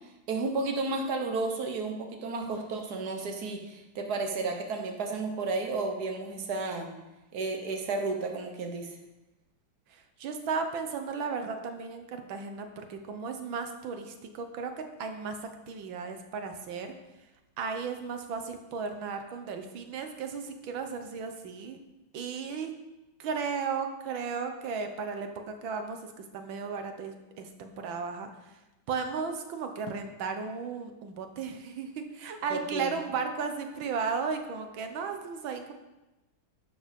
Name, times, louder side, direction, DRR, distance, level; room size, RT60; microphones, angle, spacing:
voice 1, 0.3-6.9 7.3-9.0 32.5-32.9, right 3 dB, 55° right, 3 dB, 1.8 m, -32 dB
voice 2, 2.5-2.8 9.9-15.4 15.7-16.9 17.6-21.8 22.1-22.7 23.2-25.3 25.6-28.5 28.9-35.7, right 5 dB, 85° right, 6 dB, 1.8 m, -35 dB
12.0 x 7.2 x 5.3 m, 1.0 s
omnidirectional pair, 2.1 m